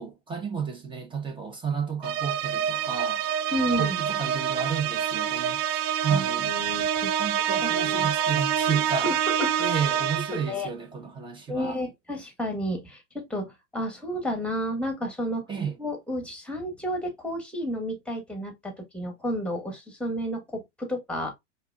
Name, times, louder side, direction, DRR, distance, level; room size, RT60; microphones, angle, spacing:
voice 1, 0.0-3.2 3.8-5.6 6.0-6.5 7.2-9.1 9.6-11.8 15.5-15.8, right 6 dB, 15° right, 1.1 m, -31 dB
sound 1, 2.0-10.5, right 9 dB, 40° right, 0.4 m, -27 dB
voice 2, 3.5-4.0 6.1-7.1 7.6-8.2 8.9-9.7 10.3-10.7 11.5-15.4 15.8-21.3, equal, 5° left, 1.5 m, -31 dB
4.6 x 2.8 x 2.3 m
hypercardioid pair, 105°, 36 cm